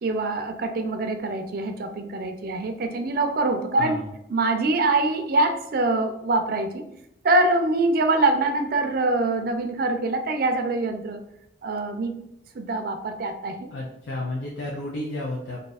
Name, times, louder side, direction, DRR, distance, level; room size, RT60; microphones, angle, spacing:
voice 1, 0.0-4.0 4.3-6.8 7.2-11.2 11.6-12.1 12.5-13.7, right 2 dB, 55° right, 6 dB, 0.4 m, -24 dB
voice 2, 3.7-4.1 13.7-15.6, left 1 dB, 80° left, -3 dB, 0.6 m, -32 dB
2.6 x 2.4 x 4.0 m, 0.77 s
head